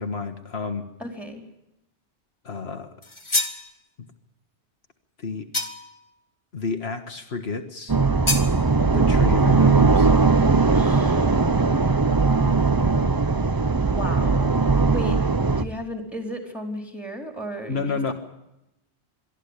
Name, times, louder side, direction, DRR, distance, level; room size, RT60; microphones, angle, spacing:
voice 1, 0.0-0.8 2.4-2.9 5.2-5.5 6.5-8.0 8.9-10.1 17.7-18.1, left 4 dB, 70° left, 6 dB, 1.7 m, -30 dB
voice 2, 1.0-1.4 10.7-11.4 13.8-14.6 14.9-18.1, equal, ahead, 5 dB, 4.2 m, -34 dB
sound 1, 3.0-3.6 5.5-6.0 8.3-8.5, left 2 dB, 25° left, 1.8 m, -26 dB
sound 2, 7.9-15.6, right 4 dB, 20° right, 0.7 m, -19 dB
22.5 x 14.0 x 9.9 m, 0.89 s
omnidirectional pair, 1.1 m